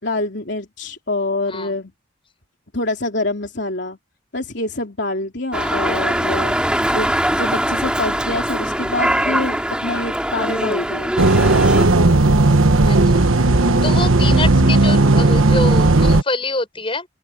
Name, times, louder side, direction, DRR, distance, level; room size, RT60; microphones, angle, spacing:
voice 1, 0.0-1.9 2.7-4.0 4.3-6.5 6.9-7.1 7.4-11.1 13.6-14.7, left 2 dB, 60° left, 3.5 m, -26 dB
voice 2, 5.5-6.0 12.8-13.3 13.6-17.1, left 3 dB, 25° left, 7.1 m, -26 dB
Dog, 5.5-11.8, right 1 dB, 5° right, 3.0 m, -22 dB
sound 1, 11.2-16.2, right 2 dB, 85° right, 1.3 m, -14 dB
open air
head